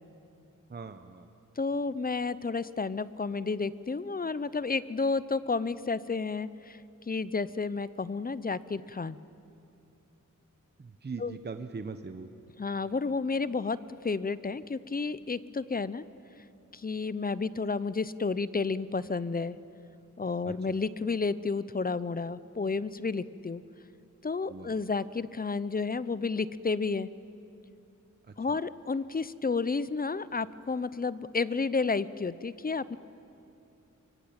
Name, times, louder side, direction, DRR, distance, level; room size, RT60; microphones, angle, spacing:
voice 1, 0.7-1.3 10.8-12.3 20.4-20.8 24.5-24.8 28.3-28.6, right 4 dB, 30° right, 8 dB, 0.9 m, -41 dB
voice 2, 1.6-6.8 7.1-9.2 11.2-11.4 12.6-13.8 14.0-16.0 16.7-19.6 20.2-23.6 24.2-27.1 28.4-33.0, left 4 dB, 30° left, 16 dB, 0.6 m, -31 dB
24.5 x 24.0 x 8.8 m, 2.7 s
wide cardioid pair, 110°, 32 cm